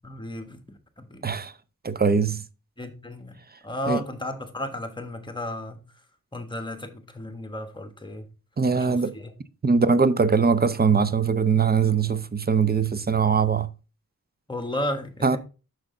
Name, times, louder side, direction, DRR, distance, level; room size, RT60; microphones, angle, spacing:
voice 1, 0.0-0.6 1.0-1.2 2.8-3.4 3.6-5.8 6.3-8.2 8.7-9.3 14.5-15.4, left 1 dB, 15° left, 1.2 m, -33 dB
voice 2, 1.8-2.4 3.9-4.0 8.6-9.1 9.6-13.7 15.2-15.4, right 5 dB, 30° right, 0.5 m, -21 dB
6.3 x 6.2 x 3.7 m
wide cardioid pair, 120°, 35 cm